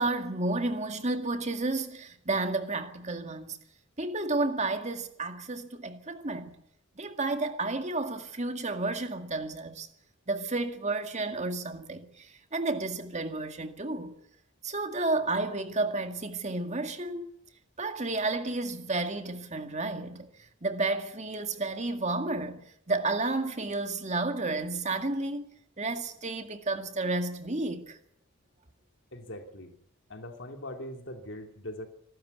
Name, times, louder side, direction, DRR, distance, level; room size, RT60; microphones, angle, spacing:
voice 1, 0.0-3.6 4.0-6.5 7.0-9.9 10.3-12.1 12.5-14.1 14.6-17.3 17.8-20.3 20.6-22.6 22.9-25.5 25.8-28.0, right 2 dB, 35° right, 2.1 m, -31 dB
voice 2, 29.1-29.7 30.1-31.9, left 1 dB, 60° left, 2.7 m, -41 dB
26.0 x 12.5 x 9.4 m
head